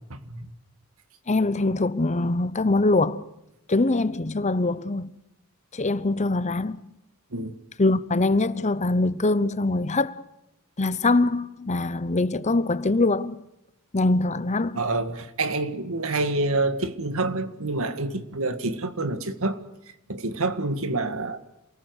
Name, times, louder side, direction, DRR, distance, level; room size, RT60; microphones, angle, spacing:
voice 1, 0.1-0.5 7.3-7.6 14.8-19.6 20.1-21.4, right 2 dB, 65° right, 2.0 m, -27 dB
voice 2, 1.3-3.3 3.7-5.1 5.7-6.8 7.8-10.1 10.8-13.4 13.9-14.8, left 2 dB, 30° left, 0.9 m, -23 dB
28.0 x 19.0 x 8.1 m
head